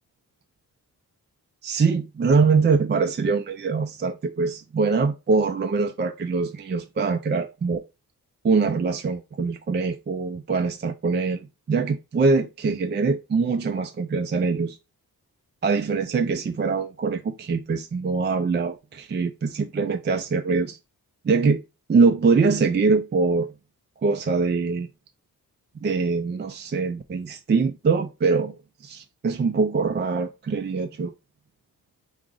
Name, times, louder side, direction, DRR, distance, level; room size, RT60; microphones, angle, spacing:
voice 1, 1.6-7.8 8.4-14.8 15.6-20.8 21.2-21.6 21.9-23.5 24.0-24.9 25.8-28.6 28.8-31.1, right 4 dB, 30° right, 0.4 m, -23 dB
4.8 x 2.5 x 3.8 m
wide cardioid pair, 110°, 36 cm